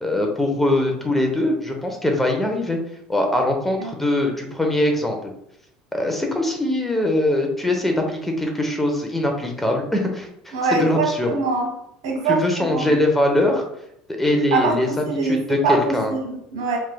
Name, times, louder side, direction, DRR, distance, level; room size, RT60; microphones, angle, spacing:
voice 1, 0.0-2.8 3.1-5.3 5.9-11.3 12.3-13.6 14.2-14.9 15.2-16.1, left 1 dB, 5° left, 2 dB, 0.8 m, -22 dB
voice 2, 10.5-11.7 12.0-13.0 14.5-16.8, right 3 dB, 90° right, 0 dB, 1.3 m, -23 dB
4.4 x 3.3 x 2.2 m, 0.76 s
supercardioid pair, 100°, 2 cm